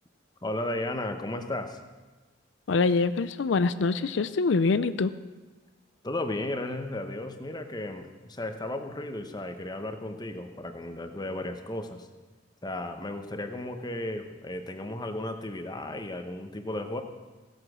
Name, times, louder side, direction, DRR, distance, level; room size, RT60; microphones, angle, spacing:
voice 1, 0.4-1.8 6.0-12.1 12.6-17.0, left 1 dB, 20° left, 7 dB, 0.9 m, -34 dB
voice 2, 2.7-5.1, left 4 dB, 65° left, 13 dB, 0.5 m, -24 dB
16.5 x 7.9 x 6.2 m, 1.3 s
head